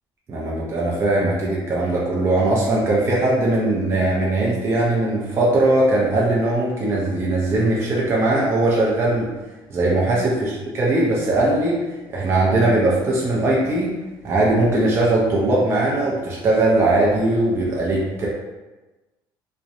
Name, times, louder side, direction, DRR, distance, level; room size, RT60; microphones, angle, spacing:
voice 1, 0.3-9.3 9.7-11.8 12.1-13.9 14.2-18.3, right 2 dB, 30° right, -4 dB, 0.4 m, -20 dB
2.6 x 2.0 x 2.5 m, 1.1 s
cardioid pair, 135°, 9 cm